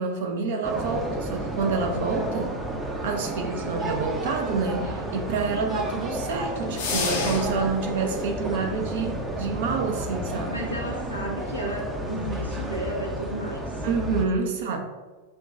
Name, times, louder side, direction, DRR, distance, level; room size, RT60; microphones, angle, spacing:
voice 1, 0.0-2.6 3.0-10.7 13.8-14.8, right 4 dB, 55° right, 4 dB, 0.6 m, -28 dB
sound 1, 0.6-14.2, right 1 dB, 15° right, 0.6 m, -32 dB
sound 2, 6.8-7.8, left 4 dB, 55° left, 0.7 m, -28 dB
voice 2, 10.5-13.7, right 1 dB, 90° left, -2 dB, 0.8 m, -33 dB
6.0 x 2.3 x 2.6 m, 1.3 s
figure-of-eight pair, 90°, 0 cm